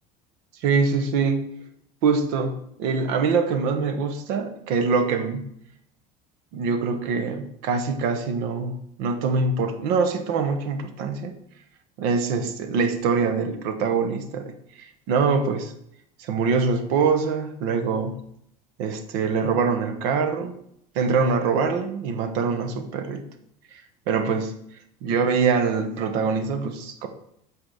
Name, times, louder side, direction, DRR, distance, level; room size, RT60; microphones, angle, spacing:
voice 1, 0.6-1.4 2.0-2.5 2.8-5.5 6.5-11.3 12.0-14.5 14.8-15.7 16.2-18.2 18.8-20.6 20.9-23.2 24.1-24.6 25.0-27.1, right 5 dB, 70° right, 8 dB, 1.2 m, -24 dB
7.6 x 4.8 x 5.0 m, 0.73 s
supercardioid pair, 95°, 20 cm